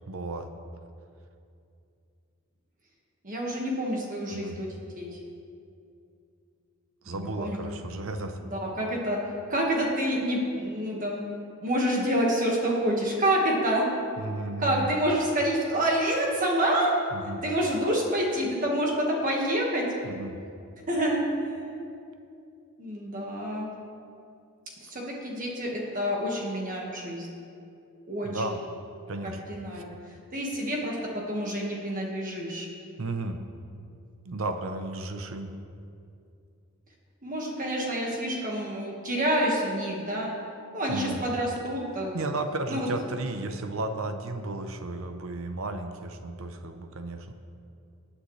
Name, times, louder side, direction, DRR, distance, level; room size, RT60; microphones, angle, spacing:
voice 1, 0.1-0.5 4.3-4.6 7.0-8.4 14.2-14.9 17.1-17.4 20.0-20.4 28.2-28.6 29.1-29.4 29.7-29.8 33.0-33.4 34.2-35.5 40.9-41.3 42.1-47.3, right 2 dB, 70° right, 7 dB, 0.7 m, -34 dB
voice 2, 3.2-4.7 5.0-5.2 7.1-7.6 8.5-9.2 9.5-11.2 11.6-13.8 14.6-16.9 17.2-19.8 20.9-21.7 22.8-23.7 24.8-27.3 28.1-28.4 29.5-29.9 30.3-32.7 37.2-40.3 40.7-42.3 42.7-42.9, right 1 dB, 40° right, -2 dB, 1.6 m, -28 dB
19.0 x 9.0 x 3.2 m, 2.5 s
head